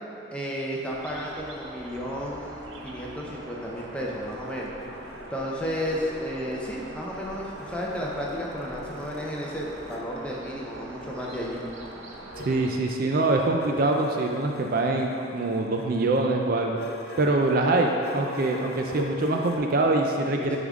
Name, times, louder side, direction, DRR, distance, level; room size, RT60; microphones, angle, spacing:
voice 1, 0.3-4.7 5.3-11.6 20.3-20.6, equal, 5° left, -4 dB, 0.7 m, -33 dB
sound 1, 0.9-12.7, right 2 dB, 80° right, 0.7 m, -43 dB
sound 2, 3.5-6.8 7.1-10.1 11.0-19.6, left 2 dB, 55° left, 0.5 m, -43 dB
voice 2, 12.4-16.8 17.2-20.6, right 2 dB, 45° right, 2 dB, 0.4 m, -24 dB
9.4 x 3.7 x 3.6 m, 2.7 s
head